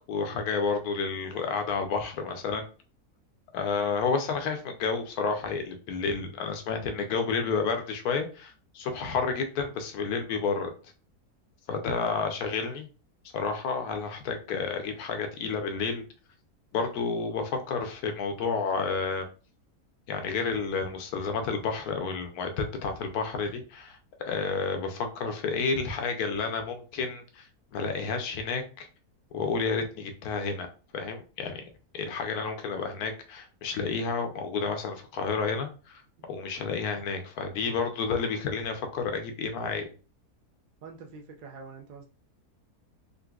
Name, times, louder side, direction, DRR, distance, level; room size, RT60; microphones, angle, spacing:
voice 1, 0.1-2.7 3.5-10.7 11.7-12.9 13.3-16.1 16.7-19.3 20.1-24.0 24.2-27.5 27.7-28.9 29.3-30.7 30.9-31.6 31.9-36.0 36.3-39.9, left 5 dB, 75° left, 5 dB, 1.1 m, -30 dB
voice 2, 40.8-42.0, right 4 dB, 75° right, 2 dB, 0.4 m, -45 dB
3.8 x 2.6 x 2.3 m, 0.35 s
omnidirectional pair, 1.6 m